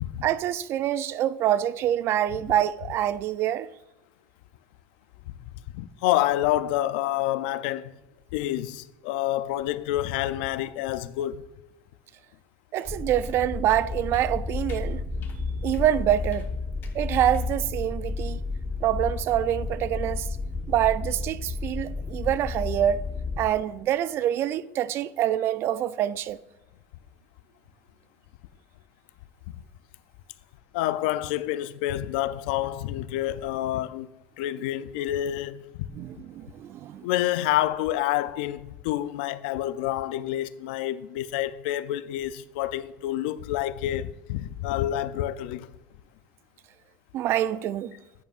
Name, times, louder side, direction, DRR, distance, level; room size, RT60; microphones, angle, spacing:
voice 1, 0.2-3.7 12.7-15.0 15.6-16.5 16.9-18.4 18.8-20.3 20.7-23.1 23.4-26.4 35.9-37.0 47.1-47.9, right 11 dB, 50° right, 0.4 m, -26 dB
voice 2, 5.7-7.9 8.3-11.5 30.7-34.1 34.4-35.9 37.0-45.7, left 13 dB, 85° left, 0.4 m, -28 dB
sound 1, 12.8-12.9 13.2-13.3 13.7-13.9 14.1-14.3 14.7-14.8 15.2-15.4 15.7-15.9 16.3-16.5 16.8-17.0 17.3-17.5, left 7 dB, 45° left, 1.2 m, -51 dB
sound 2, 12.9-23.5, left 3 dB, 10° left, 1.0 m, -32 dB
9.5 x 8.9 x 2.4 m
supercardioid pair, 120°, 5 cm